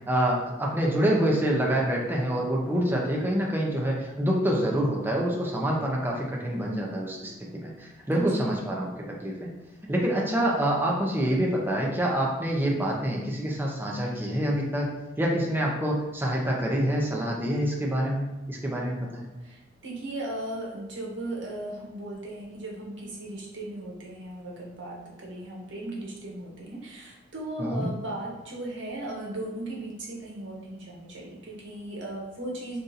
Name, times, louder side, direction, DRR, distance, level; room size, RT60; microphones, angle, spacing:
voice 1, 0.1-7.3 7.6-9.5 9.9-14.9 15.2-19.3 27.6-27.9, right 1 dB, 10° right, -2 dB, 0.5 m, -26 dB
voice 2, 8.1-8.6 19.4-32.8, right 1 dB, 80° right, -3 dB, 0.9 m, -37 dB
2.7 x 2.5 x 3.9 m, 1.0 s
head